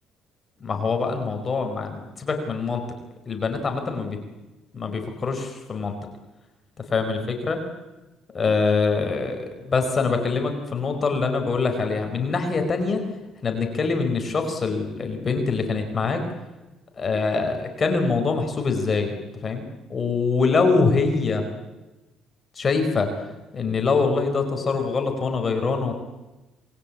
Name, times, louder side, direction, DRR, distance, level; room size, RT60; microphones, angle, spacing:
voice 1, 0.6-2.8 3.3-4.2 4.7-5.9 6.9-7.6 8.3-13.0 13.4-16.2 17.0-19.1 19.4-19.6 19.9-21.4 22.5-23.1 23.5-25.9, left 4 dB, 25° left, 5 dB, 4.7 m, -24 dB
27.5 x 22.0 x 8.6 m, 1.1 s
cardioid pair, 140°, 0 cm